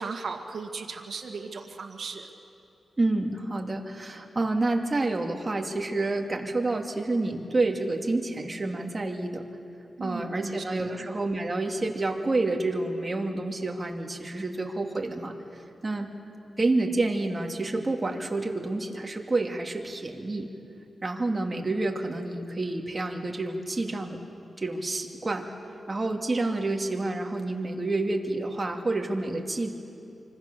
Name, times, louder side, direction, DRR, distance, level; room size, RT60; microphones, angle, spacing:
voice 1, 0.0-2.3 10.0-11.1, right 4 dB, 65° right, 2 dB, 2.2 m, -37 dB
voice 2, 3.0-9.4 10.0-16.1 16.6-20.5 21.0-24.2 24.6-25.4 25.9-29.7, right 2 dB, 30° right, 2 dB, 2.5 m, -29 dB
25.5 x 25.5 x 6.9 m, 2.6 s
wide cardioid pair, 90°, 0 cm